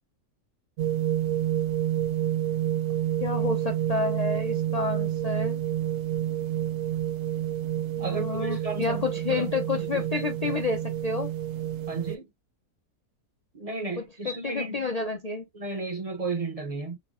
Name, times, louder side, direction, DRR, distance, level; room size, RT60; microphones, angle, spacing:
sound 1, 0.8-12.2, right 12 dB, 70° right, 0.9 m, -29 dB
voice 1, 3.2-5.6 8.0-11.3 14.0-15.4, left 4 dB, 65° left, 0.3 m, -30 dB
voice 2, 8.0-10.6 11.9-12.3 13.5-15.1 15.5-17.0, right 3 dB, 40° right, 0.5 m, -34 dB
5.6 x 2.1 x 2.3 m
omnidirectional pair, 1.6 m